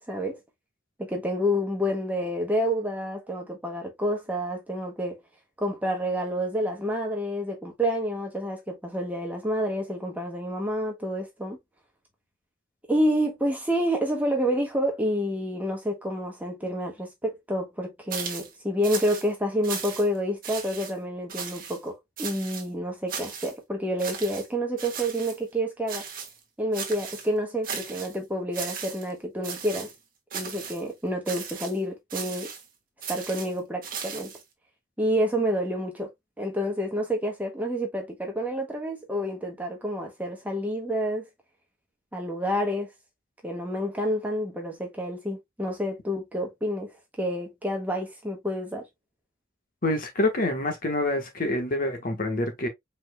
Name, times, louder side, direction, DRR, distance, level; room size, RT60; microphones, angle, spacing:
voice 1, 0.1-0.4 1.0-5.2 5.6-11.6 12.9-26.0 26.6-29.9 30.3-32.5 33.1-34.3 35.0-36.1 36.4-41.3 42.1-42.9 43.4-46.9 47.2-48.8, equal, 10° right, 1.4 m, -28 dB
sound 1, 18.1-18.5 18.8-19.3 19.6-20.2 20.4-20.9 21.3-21.8 22.2-22.7 23.1-23.5 24.0-24.5 24.8-25.4 25.9-26.4 26.7-27.3 27.6-28.2 28.5-29.1 29.4-30.0 30.3-30.8 31.3-31.8 32.1-32.7 33.0-34.4, right 6 dB, 45° right, 1.4 m, -36 dB
voice 2, 49.8-52.7, left 1 dB, 45° left, 1.2 m, -26 dB
4.8 x 4.3 x 2.2 m
head